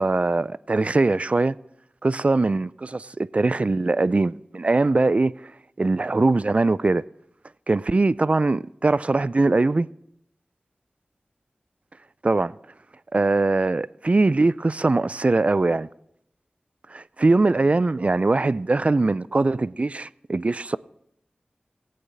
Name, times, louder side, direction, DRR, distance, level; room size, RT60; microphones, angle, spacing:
voice 1, 0.0-1.6 2.0-5.3 5.8-7.0 7.7-9.9 12.2-12.5 13.1-15.9 16.9-20.8, right 3 dB, 40° right, 0.3 m, -21 dB
16.5 x 8.6 x 4.0 m
wide cardioid pair, 50°, 3 cm